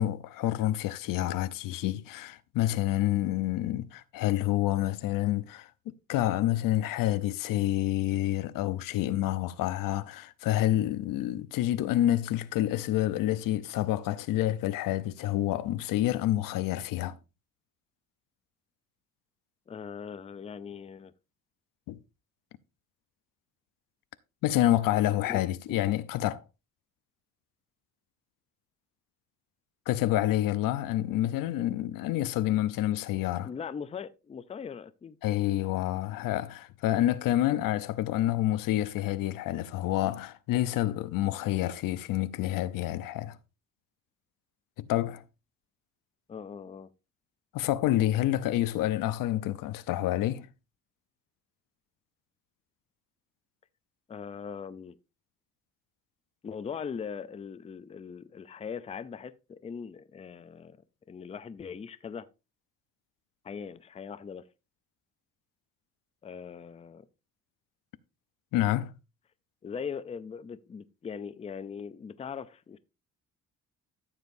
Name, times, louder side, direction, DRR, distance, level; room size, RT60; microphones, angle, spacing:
voice 1, 0.0-5.7 6.1-17.2 21.9-22.0 24.4-26.4 29.9-33.5 35.2-43.4 44.8-45.2 47.5-50.5 68.5-68.9, left 14 dB, 90° left, 0.7 m, -28 dB
voice 2, 19.7-21.1 25.2-25.4 25.7-25.8 33.4-35.2 46.3-46.9 54.1-55.0 56.4-60.8 61.1-62.3 63.4-64.5 66.2-67.0 69.6-72.8, left 6 dB, 20° left, 0.5 m, -40 dB
13.5 x 7.3 x 2.6 m
cardioid pair, 150°, 32 cm